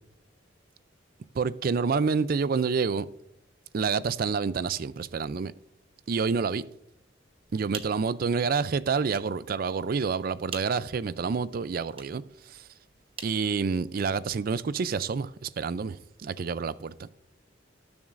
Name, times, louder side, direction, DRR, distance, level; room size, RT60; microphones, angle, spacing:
voice 1, 1.3-3.1 3.7-5.5 6.1-6.6 7.5-12.7 13.2-17.1, right 5 dB, 50° right, 0.4 m, -28 dB
sound 1, 7.4-14.2, right 5 dB, 30° right, 0.9 m, -48 dB
19.0 x 7.0 x 2.5 m
head